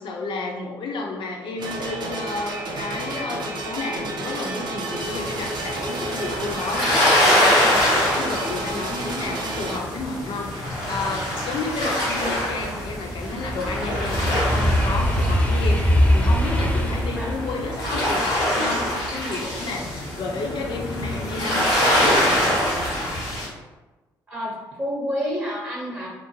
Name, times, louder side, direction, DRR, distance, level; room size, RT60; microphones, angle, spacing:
voice 1, 0.0-22.6, left 3 dB, 55° left, 1 dB, 0.6 m, -31 dB
sound 1, 1.6-9.8, right 2 dB, 50° right, 0.5 m, -31 dB
sound 2, 5.0-23.5, left 1 dB, 85° left, 1.1 m, -24 dB
sound 3, 10.6-10.7 11.1-20.2 20.6-21.0, equal, 15° left, 0.6 m, -23 dB
voice 2, 24.3-26.1, equal, 20° right, -4 dB, 0.8 m, -29 dB
2.4 x 2.1 x 3.0 m, 1.2 s
hypercardioid pair, 45°, 10 cm